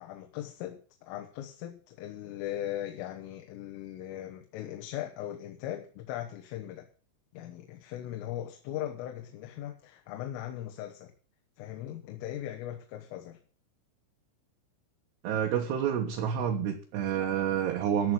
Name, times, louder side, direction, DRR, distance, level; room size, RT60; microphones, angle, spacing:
voice 1, 0.0-6.9 7.3-11.1 11.6-13.4, left 12 dB, 80° left, 5 dB, 3.7 m, -39 dB
voice 2, 15.2-18.1, right 9 dB, 65° right, 0 dB, 3.0 m, -29 dB
14.0 x 6.1 x 8.7 m, 0.42 s
omnidirectional pair, 5.8 m